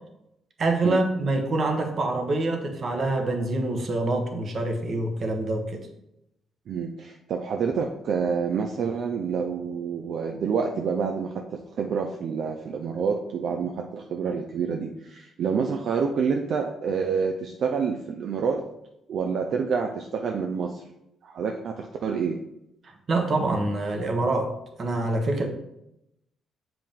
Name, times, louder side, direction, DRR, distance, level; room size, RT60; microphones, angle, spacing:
voice 1, 0.6-5.8 23.1-24.5 24.8-25.5, right 2 dB, 45° right, 4 dB, 1.2 m, -25 dB
voice 2, 6.7-18.8 19.1-20.8 21.2-22.4, right 6 dB, 65° right, 3 dB, 0.6 m, -28 dB
7.4 x 4.8 x 3.7 m, 0.84 s
cardioid pair, 90°, 0 cm